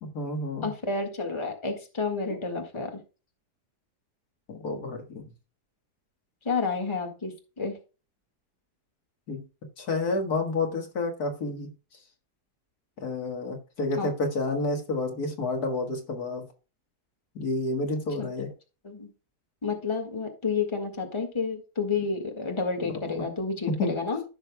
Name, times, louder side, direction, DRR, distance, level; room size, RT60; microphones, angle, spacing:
voice 1, 0.0-0.7 2.3-2.4 4.5-5.3 9.3-9.4 9.8-11.7 13.0-16.5 17.4-18.5 23.7-24.0, left 2 dB, 70° left, 2.1 m, -30 dB
voice 2, 0.6-3.0 6.4-7.8 14.0-14.1 18.2-18.3 18.8-19.1 19.6-24.2, left 4 dB, 20° left, 1.7 m, -30 dB
15.0 x 6.3 x 2.2 m
omnidirectional pair, 1.7 m